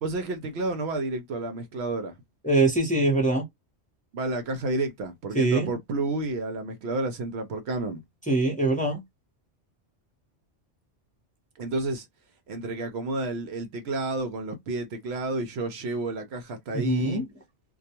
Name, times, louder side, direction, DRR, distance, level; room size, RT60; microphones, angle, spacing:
voice 1, 0.0-2.2 4.1-8.0 11.6-12.1 12.5-17.2, right 2 dB, 70° right, 0.8 m, -30 dB
voice 2, 2.4-3.4 5.3-5.7 8.3-9.0 16.7-17.2, right 2 dB, 10° left, 0.8 m, -23 dB
2.2 x 2.2 x 2.8 m
omnidirectional pair, 1.2 m